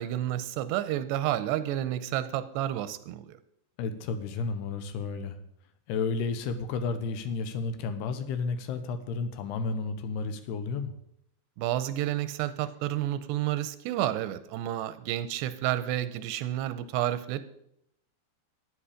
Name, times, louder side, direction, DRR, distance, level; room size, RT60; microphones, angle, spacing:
voice 1, 0.0-3.4 11.6-17.4, right 13 dB, 85° right, 13 dB, 2.8 m, -30 dB
voice 2, 3.8-5.4 5.9-10.9, left 4 dB, 80° left, 9 dB, 3.0 m, -32 dB
13.0 x 10.0 x 5.0 m, 0.76 s
omnidirectional pair, 4.9 m